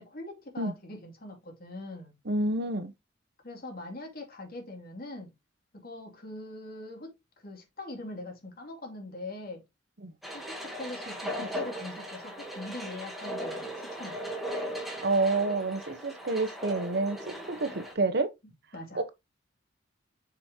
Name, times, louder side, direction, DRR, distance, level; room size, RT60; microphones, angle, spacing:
voice 1, 0.0-2.1 3.4-5.3 5.7-9.6 10.3-14.3 18.7-19.0, left 2 dB, 50° left, 2.6 m, -42 dB
voice 2, 2.3-2.9 10.0-10.1 15.0-18.3 18.9-19.1, right 3 dB, 60° right, 1.0 m, -28 dB
sound 1, 10.2-17.9, equal, ahead, 1.8 m, -38 dB
7.1 x 5.2 x 2.8 m
head